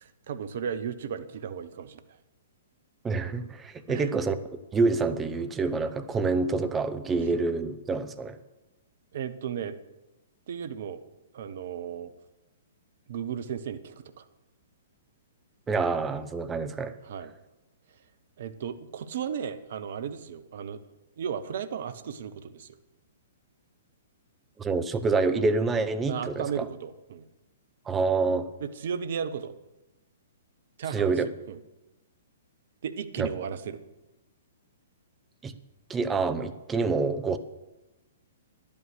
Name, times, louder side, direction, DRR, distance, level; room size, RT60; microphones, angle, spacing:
voice 1, 0.0-2.0 3.9-4.1 9.1-9.8 10.5-11.0 11.3-12.1 13.1-14.2 17.0-17.3 18.4-20.8 21.2-22.8 26.1-27.2 28.8-29.5 30.8-31.1 31.5-31.6 32.8-33.8, right 7 dB, 55° right, 12 dB, 0.9 m, -35 dB
voice 2, 3.0-4.4 4.7-8.4 15.7-16.9 24.6-26.7 27.9-28.5 30.9-31.3 33.2-33.3 35.4-35.5 35.9-37.4, right 4 dB, 15° right, 11 dB, 0.8 m, -27 dB
11.0 x 8.7 x 6.6 m, 1.0 s
figure-of-eight pair, 115°, 0 cm